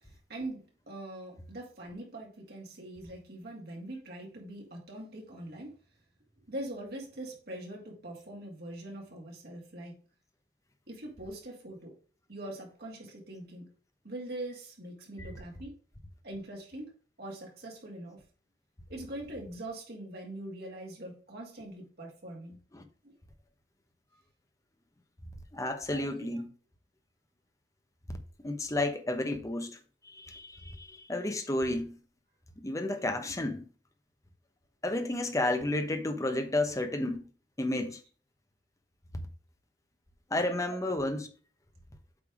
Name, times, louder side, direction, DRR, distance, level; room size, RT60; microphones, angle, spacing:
voice 1, 0.0-5.8 6.5-10.0 10.9-11.9 12.3-13.7 14.0-15.7 16.2-18.2 18.9-22.6 23.0-23.1 25.9-26.4 40.7-40.8, right 1 dB, 60° right, 2.5 m, -43 dB
voice 2, 25.5-26.5 28.4-29.8 30.0-32.0 32.6-33.6 34.8-37.2 37.6-38.0 40.3-41.3, left 1 dB, 20° left, 0.9 m, -31 dB
8.6 x 3.5 x 4.8 m
head